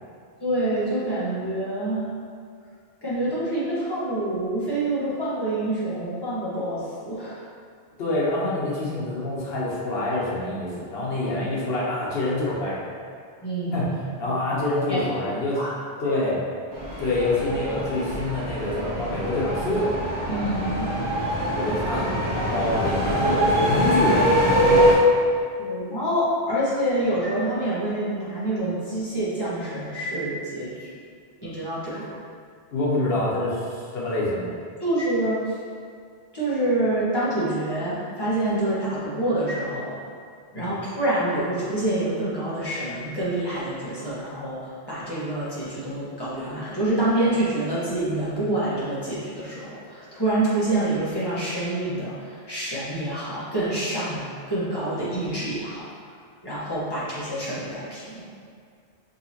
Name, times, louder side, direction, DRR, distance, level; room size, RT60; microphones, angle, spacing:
voice 1, 0.4-2.1 3.0-7.4 13.4-13.9 14.3-14.4 14.9-15.1 15.6-15.7 20.3-20.9 25.6-30.9 31.4-32.0 34.8-35.6 36.3-39.9 40.5-55.9 56.4-58.3, right 1 dB, 25° left, -10 dB, 1.2 m, -27 dB
voice 2, 8.0-12.9 13.7-13.9 14.2-15.6 16.0-16.4 17.0-19.9 21.5-25.1 31.9-32.1 32.7-34.5 40.5-40.7, left 2 dB, 75° left, -6 dB, 1.1 m, -26 dB
sound 1, 16.7-24.9, equal, 80° right, 1.2 m, -23 dB
5.2 x 2.8 x 2.8 m, 2.2 s
omnidirectional pair, 1.1 m